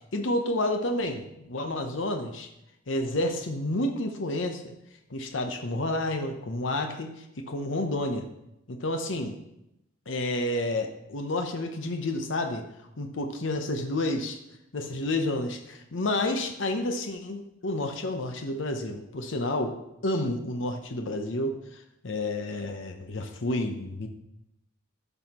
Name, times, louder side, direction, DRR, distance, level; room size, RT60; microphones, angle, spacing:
voice 1, 0.1-2.5 2.9-4.7 5.1-7.1 7.5-8.3 8.7-9.4 10.1-12.6 13.0-14.4 14.7-19.8 20.0-24.1, left 1 dB, 70° left, 5 dB, 0.8 m, -30 dB
12.0 x 5.6 x 3.0 m, 0.83 s
head